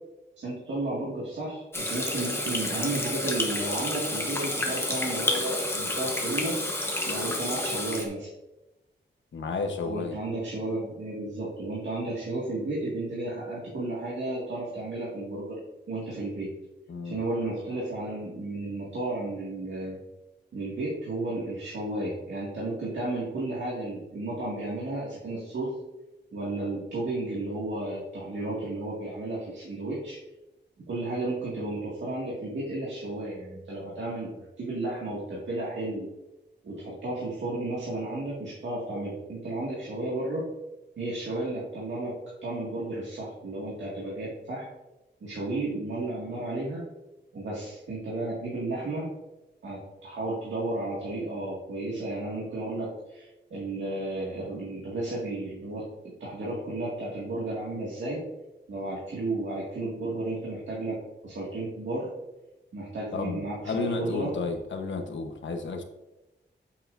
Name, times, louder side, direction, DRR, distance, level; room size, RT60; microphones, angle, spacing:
voice 1, 0.4-6.6 7.0-8.3 9.9-15.6 15.9-16.5 17.0-20.0 20.5-25.7 26.3-30.2 30.9-36.1 36.6-40.5 41.0-42.1 42.4-44.7 45.2-46.8 47.3-49.1 49.6-55.9 56.2-58.2 58.7-61.0 61.2-62.1 62.7-64.3, right 2 dB, 80° right, -6 dB, 2.0 m, -33 dB
Water tap faucet / Sink (filling or washing), 1.7-8.0, left 1 dB, 15° left, 1.1 m, -30 dB
voice 2, 9.3-10.2 16.9-17.2 63.1-65.8, left 3 dB, 80° left, 5 dB, 1.1 m, -32 dB
8.9 x 7.4 x 2.6 m, 1.0 s
wide cardioid pair, 180°, 19 cm